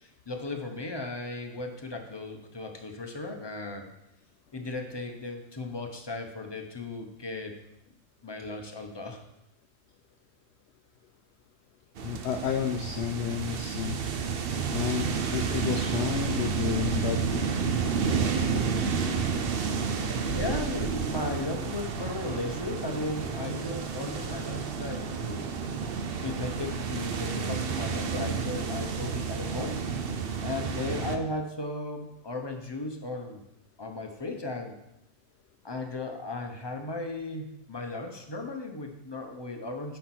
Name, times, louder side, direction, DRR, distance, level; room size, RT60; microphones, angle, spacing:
voice 1, 0.0-3.9 4.5-7.5 8.2-9.2 20.3-25.5 26.2-29.8 30.4-33.4 33.8-34.7 35.6-40.0, left 2 dB, 20° left, 3 dB, 0.9 m, -36 dB
voice 2, 12.0-14.0 14.7-17.4, left 8 dB, 65° left, 5 dB, 0.8 m, -31 dB
sound 1, 12.0-31.2, right 5 dB, 55° right, 0.8 m, -30 dB
9.9 x 4.5 x 6.1 m, 0.84 s
omnidirectional pair, 1.4 m